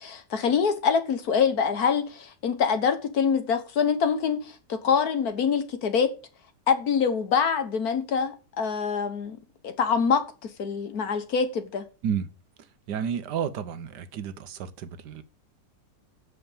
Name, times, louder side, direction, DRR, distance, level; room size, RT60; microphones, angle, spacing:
voice 1, 0.0-6.1 6.7-9.4 9.6-11.8, left 6 dB, 65° left, 1.7 m, -25 dB
voice 2, 12.9-15.2, right 7 dB, 85° right, 1.5 m, -31 dB
8.2 x 6.7 x 7.3 m
omnidirectional pair, 1.8 m